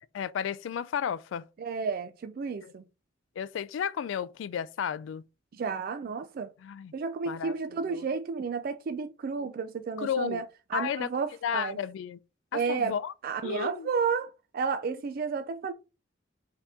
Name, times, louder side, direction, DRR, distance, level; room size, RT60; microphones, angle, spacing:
voice 1, 0.1-1.5 2.6-2.7 3.4-5.2 6.6-6.9 7.3-7.6 7.9-8.1 10.0-10.4 10.7-11.1 11.4-12.2 12.5-13.1 13.4-13.9, left 8 dB, 70° left, 0.3 m, -33 dB
voice 2, 1.6-2.8 5.5-6.5 6.9-10.4 10.7-11.8 12.5-12.9 13.2-15.7, right 5 dB, 50° right, 0.3 m, -32 dB
4.3 x 2.8 x 3.5 m
head